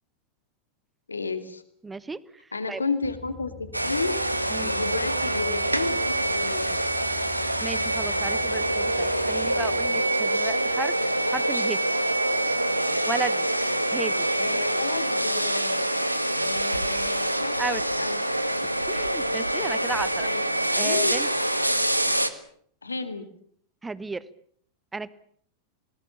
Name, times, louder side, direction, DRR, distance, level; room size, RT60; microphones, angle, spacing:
voice 1, 1.1-1.6 2.5-3.5 3.8-4.2 4.6-6.7 14.3-15.9 16.4-17.6 18.0-18.2 20.2-20.4 20.7-21.1 22.8-23.3, left 4 dB, 80° left, 11 dB, 2.4 m, -31 dB
voice 2, 1.8-2.4 2.7-2.8 4.5-4.7 7.6-10.9 11.3-11.8 13.1-13.5 13.9-14.3 17.6-17.8 18.9-20.3 20.7-21.3 23.8-24.3 24.9-25.1, right 3 dB, 10° right, 18 dB, 1.2 m, -33 dB
sound 1, 3.0-9.9, left 3 dB, 35° left, 3.5 m, -44 dB
sound 2, 3.7-22.3, right 1 dB, 85° right, 1.7 m, -25 dB
28.5 x 19.5 x 7.2 m, 0.62 s
figure-of-eight pair, 90°, 0 cm